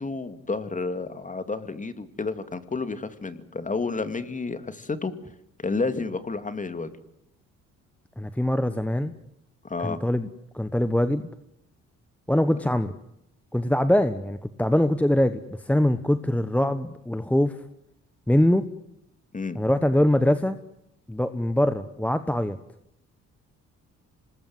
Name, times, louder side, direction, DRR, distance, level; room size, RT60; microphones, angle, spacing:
voice 1, 0.0-5.1 5.6-6.9 9.6-10.0 19.3-19.6, left 3 dB, 25° left, 11 dB, 2.3 m, -30 dB
voice 2, 8.2-9.1 9.8-10.3 10.5-11.3 12.3-12.9 13.5-17.5 18.3-18.6 19.6-20.6 21.1-22.6, left 1 dB, 5° left, 11 dB, 1.1 m, -23 dB
26.5 x 20.0 x 7.8 m, 0.81 s
cardioid pair, 90°, 30 cm